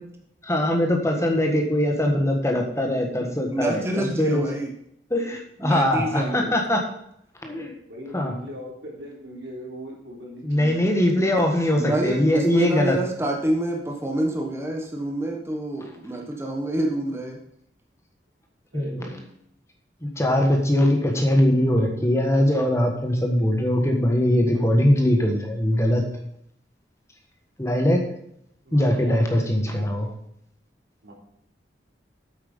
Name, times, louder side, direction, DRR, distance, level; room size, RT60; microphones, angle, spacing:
voice 1, 0.4-4.4 5.1-6.8 7.4-7.7 8.1-8.3 10.4-13.0 18.7-19.0 20.0-26.0 27.6-28.0 28.7-30.1, left 1 dB, 15° left, 2 dB, 1.4 m, -21 dB
voice 2, 3.5-4.7 5.6-6.6 11.8-17.4, right 1 dB, 15° right, 1 dB, 1.2 m, -27 dB
voice 3, 7.9-11.5 18.7-19.3 28.6-29.5 31.0-31.1, equal, 90° right, -2 dB, 3.6 m, -39 dB
8.6 x 8.0 x 5.4 m, 0.73 s
head